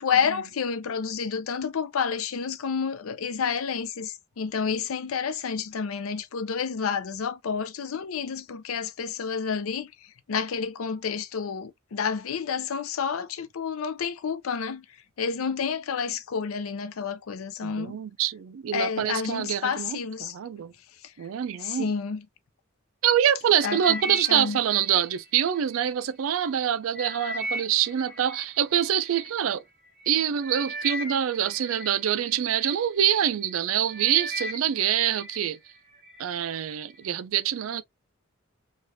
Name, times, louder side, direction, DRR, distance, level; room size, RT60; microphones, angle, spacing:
voice 1, 0.0-9.9 10.3-14.8 15.2-18.0 18.7-20.3 21.6-22.2 23.6-24.6, left 6 dB, 90° left, 0.5 m, -29 dB
voice 2, 17.6-20.7 21.2-21.9 23.0-29.6 30.1-35.6 36.2-37.8, right 9 dB, 80° right, 0.4 m, -25 dB
sound 1, 23.6-25.9 26.4-29.3 30.0-30.1 30.4-32.8 33.3-33.6 33.9-35.4 35.8-36.2 36.8-36.9, equal, 50° right, 1.5 m, -37 dB
3.3 x 2.3 x 2.6 m
head